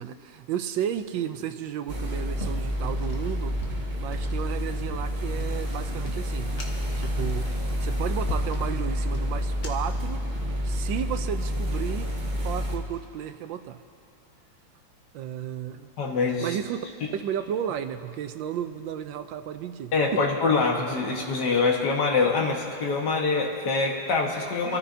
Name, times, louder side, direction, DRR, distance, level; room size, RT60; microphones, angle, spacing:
voice 1, 0.0-3.6 4.0-7.5 7.8-10.2 10.6-12.1 12.4-13.8 15.1-15.9 16.4-16.8 17.1-20.2 24.6-24.8, right 9 dB, 80° right, 9 dB, 1.4 m, -33 dB
sound 1, 1.9-12.8, equal, 30° right, 1.0 m, -29 dB
sound 2, 2.3-10.0, left 2 dB, 45° left, 1.6 m, -42 dB
voice 2, 16.0-16.6 19.9-24.8, left 4 dB, 60° left, 0 dB, 2.1 m, -24 dB
27.0 x 13.5 x 2.8 m, 2.6 s
omnidirectional pair, 2.1 m